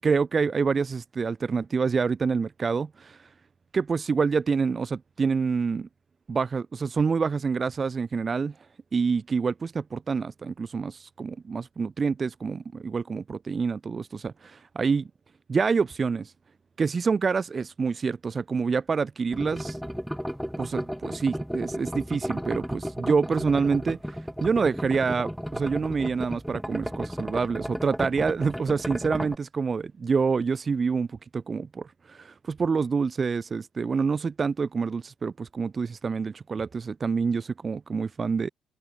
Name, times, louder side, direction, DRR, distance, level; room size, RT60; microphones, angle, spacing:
voice 1, 0.0-3.3 3.7-5.9 6.3-8.5 8.9-15.1 15.5-16.3 16.8-19.8 20.6-38.5, right 5 dB, 35° right, 5.7 m, -27 dB
sound 1, 19.3-29.4, equal, ahead, 4.7 m, -34 dB
cardioid pair, 90°, 0 cm